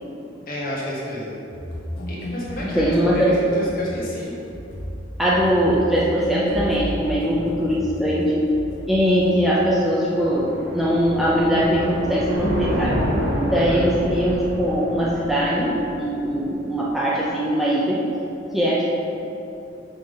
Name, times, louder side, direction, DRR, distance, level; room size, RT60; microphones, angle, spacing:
voice 1, 0.5-1.4 2.1-4.3 13.5-13.9, equal, 45° left, -7 dB, 1.5 m, -30 dB
sound 1, 1.5-9.4, left 1 dB, 80° left, 1.1 m, -34 dB
voice 2, 2.7-3.3 5.2-8.5 8.9-13.1 13.5-18.1 18.5-18.8, equal, ahead, -6 dB, 0.5 m, -21 dB
sound 2, 9.0-16.4, equal, 55° right, 1.0 m, -28 dB
5.5 x 3.7 x 5.1 m, 2.8 s
head